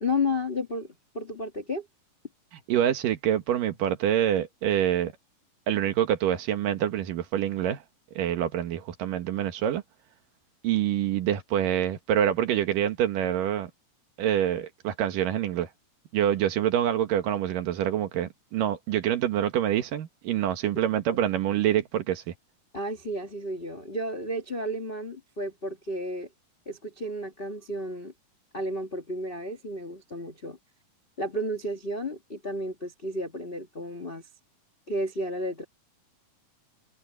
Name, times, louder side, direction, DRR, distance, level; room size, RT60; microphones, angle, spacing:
voice 1, 0.0-1.9 22.7-26.3 26.6-28.1 28.5-30.6 31.2-34.3 34.9-35.6, left 1 dB, 45° left, 0.7 m, -32 dB
voice 2, 2.7-5.1 5.7-7.8 8.2-9.8 10.6-13.7 14.2-15.7 16.1-22.3, right 10 dB, 80° right, 3.1 m, -26 dB
omnidirectional pair, 3.8 m